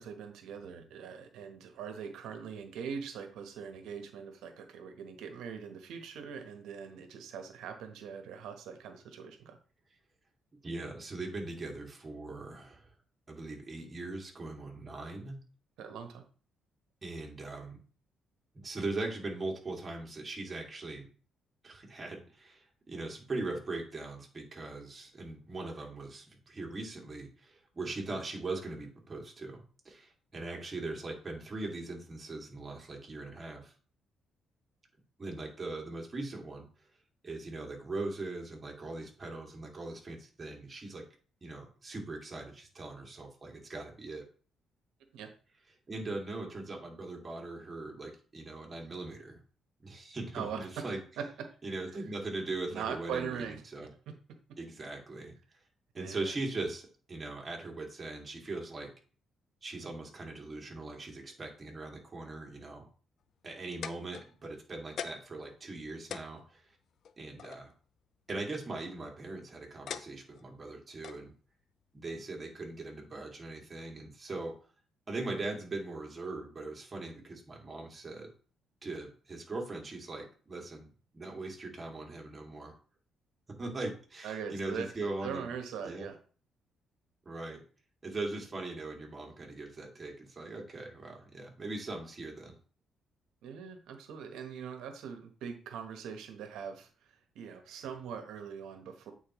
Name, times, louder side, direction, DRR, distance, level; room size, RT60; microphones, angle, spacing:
voice 1, 0.0-9.6 15.8-16.2 45.1-45.3 50.3-50.6 51.2-51.3 52.7-53.6 54.1-54.2 56.0-56.3 84.2-84.9 85.2-86.2 93.4-96.9 97.3-99.1, right 7 dB, 85° right, 6 dB, 1.2 m, -41 dB
voice 2, 10.6-12.9 13.3-15.4 17.0-17.8 18.5-21.1 21.6-33.7 35.2-36.7 37.2-41.0 41.4-44.2 45.9-49.4 49.8-51.0 51.6-53.9 54.6-55.3 55.9-58.9 59.6-62.9 63.4-66.7 67.2-67.7 68.3-71.3 71.9-74.5 75.1-78.3 78.8-80.9 81.1-82.7 83.6-85.5 85.8-86.1 87.2-87.6 88.0-92.6, right 2 dB, 30° right, 0 dB, 2.3 m, -40 dB
sound 1, 63.8-64.6 65.0-65.4 65.7-65.8 66.1-67.6 68.7-69.1 69.9-70.5 71.0-71.2 72.1-72.2, left 7 dB, 65° left, 0.4 m, -42 dB
8.6 x 4.4 x 3.1 m, 0.40 s
cardioid pair, 90°, 0 cm